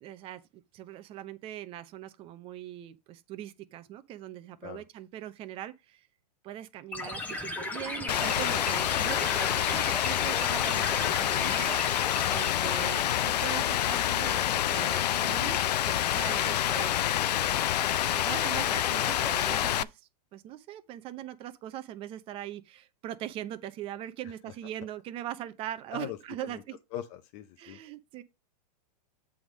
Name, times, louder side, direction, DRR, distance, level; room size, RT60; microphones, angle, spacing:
voice 1, 0.0-6.1 6.4-15.6 16.0-26.8 27.6-28.2, right 12 dB, 25° right, 0.7 m, -41 dB
sound 1, 6.9-12.5, left 2 dB, 5° left, 1.0 m, -36 dB
Rain, 8.1-19.8, left 12 dB, 80° left, 0.5 m, -27 dB
voice 2, 26.9-27.8, left 11 dB, 40° left, 0.7 m, -40 dB
7.9 x 3.6 x 6.3 m
hypercardioid pair, 145°, 21 cm